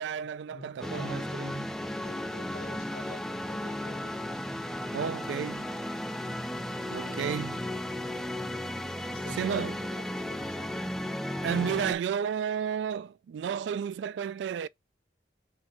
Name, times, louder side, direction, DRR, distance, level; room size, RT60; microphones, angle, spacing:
voice 1, 0.0-1.8 4.9-5.7 6.9-7.6 9.4-9.8 11.4-14.7, right 7 dB, 85° right, 0.3 m, -32 dB
voice 2, 0.5-1.6 2.0-4.4 7.0-7.2 9.1-10.9, left 3 dB, 55° left, 0.5 m, -48 dB
sound 1, 0.8-11.9, left 1 dB, 5° left, 0.3 m, -35 dB
5.5 x 3.1 x 2.9 m
head